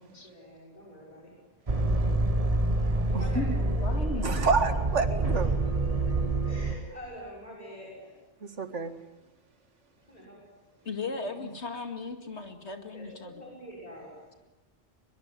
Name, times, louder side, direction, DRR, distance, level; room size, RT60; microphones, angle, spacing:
voice 1, 0.2-2.2 2.8-4.2 6.4-8.2 10.1-10.9 11.1-11.3 12.9-14.4, equal, 35° left, -3 dB, 6.4 m, -47 dB
sound 1, 1.7-6.8, right 2 dB, 30° right, 1.5 m, -27 dB
voice 2, 3.1-3.5 4.2-5.5 8.4-8.9 11.4-11.5, right 4 dB, 85° right, 8 dB, 2.3 m, -29 dB
voice 3, 3.8-4.4 10.8-13.4, left 3 dB, 70° left, 6 dB, 2.6 m, -37 dB
23.0 x 22.5 x 9.6 m, 1.0 s
omnidirectional pair, 1.2 m